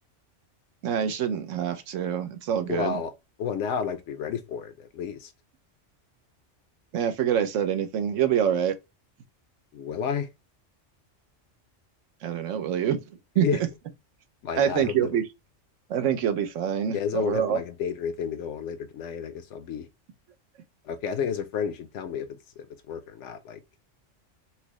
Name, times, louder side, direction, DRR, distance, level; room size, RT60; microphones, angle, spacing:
voice 1, 0.8-3.0 6.9-8.7 12.2-13.0 13.4-13.7 14.5-15.2 15.9-17.6, right 9 dB, 85° right, 1.0 m, -26 dB
voice 2, 2.7-3.1 3.4-5.3 9.7-10.3 13.4-13.6 14.4-15.1 16.9-19.9 20.8-23.6, left 7 dB, 75° left, 0.9 m, -31 dB
4.4 x 2.0 x 2.9 m
omnidirectional pair, 1.3 m